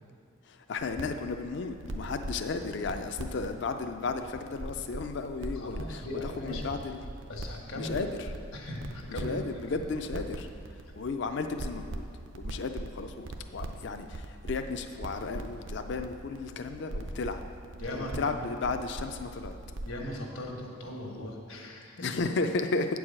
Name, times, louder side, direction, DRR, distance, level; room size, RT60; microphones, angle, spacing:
voice 1, 0.4-7.0 7.7-8.3 9.1-10.5 11.0-12.0 12.3-17.4 17.9-19.6 22.0-23.0, left 4 dB, 55° left, 7 dB, 0.4 m, -34 dB
sound 1, 0.8-20.0, right 1 dB, 65° right, 0.6 m, -42 dB
voice 2, 5.6-6.7 7.3-8.0 8.5-9.4 17.8-18.3 19.8-22.0, left 1 dB, 80° left, 0 dB, 1.4 m, -38 dB
8.5 x 4.7 x 7.4 m, 2.4 s
head